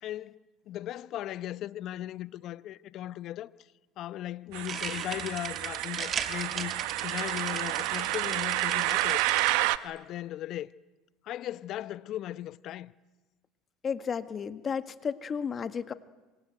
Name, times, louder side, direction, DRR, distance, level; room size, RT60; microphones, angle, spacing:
voice 1, 0.0-3.5 4.0-9.3 9.8-10.7 11.2-12.9, left 13 dB, 55° left, 0.9 m, -37 dB
sound 1, 4.5-9.5, right 7 dB, 40° right, 2.6 m, -38 dB
sound 2, 4.5-9.8, right 18 dB, 70° right, 1.0 m, -30 dB
voice 2, 13.8-15.9, left 6 dB, 35° left, 1.7 m, -33 dB
27.0 x 24.0 x 9.2 m
supercardioid pair, 90°, 0 cm